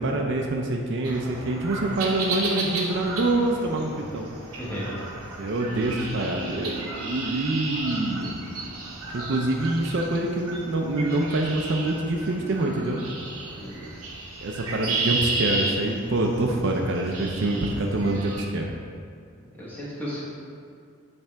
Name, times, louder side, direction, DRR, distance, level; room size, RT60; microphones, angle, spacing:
voice 1, 0.0-4.3 5.4-8.4 9.1-13.0 14.4-18.7, right 2 dB, 55° right, 1 dB, 0.4 m, -26 dB
sound 1, 1.0-18.4, right 3 dB, 90° right, 0.8 m, -33 dB
voice 2, 4.6-5.0 13.6-13.9 19.6-20.2, equal, 10° left, -8 dB, 1.3 m, -34 dB
sound 2, 5.8-9.7, right 5 dB, 50° left, 1.2 m, -43 dB
8.4 x 3.4 x 3.4 m, 2.2 s
head